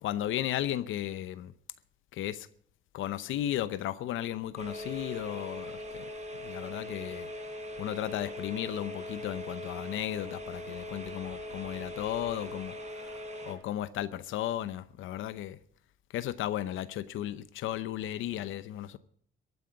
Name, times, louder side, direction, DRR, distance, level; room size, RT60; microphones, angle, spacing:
voice 1, 0.0-1.5 2.1-2.5 2.9-6.0 6.4-7.3 7.8-12.7 13.5-15.6 16.1-19.0, left 12 dB, 85° left, 0.8 m, -35 dB
sound 1, 4.6-13.5, left 1 dB, 35° right, 3.9 m, -41 dB
15.0 x 9.2 x 8.7 m
cardioid pair, 90°, 20 cm